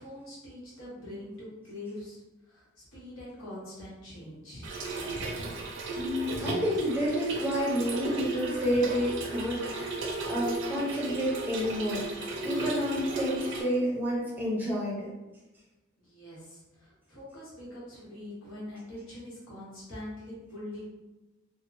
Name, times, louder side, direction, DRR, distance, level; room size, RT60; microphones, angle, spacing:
voice 1, 0.0-4.7 16.0-20.9, left 1 dB, 80° left, -7 dB, 1.0 m, -43 dB
Trickle dribble / Fill (with liquid), 4.6-13.6, right 2 dB, 65° right, 0.4 m, -35 dB
voice 2, 5.9-10.0 10.3-15.1, equal, 10° right, -6 dB, 0.5 m, -30 dB
Female singing, 8.3-14.5, equal, 40° left, 1.1 m, -45 dB
2.7 x 2.0 x 2.5 m, 1.1 s
head